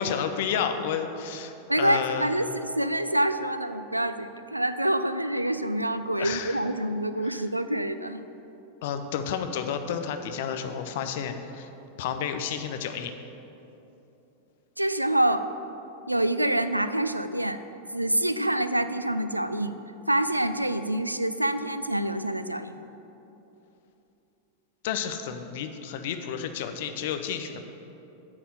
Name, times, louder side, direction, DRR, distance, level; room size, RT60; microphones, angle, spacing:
voice 1, 0.0-2.5 6.2-6.6 7.3-7.4 8.8-11.7 12.0-13.1 24.8-27.6, left 7 dB, 55° left, 7 dB, 0.6 m, -31 dB
voice 2, 1.7-8.2 14.8-15.5 16.1-17.6 17.9-19.8 20.1-22.8, right 1 dB, 85° right, 11 dB, 0.3 m, -26 dB
8.8 x 4.3 x 7.2 m, 2.9 s
figure-of-eight pair, 90°, 0 cm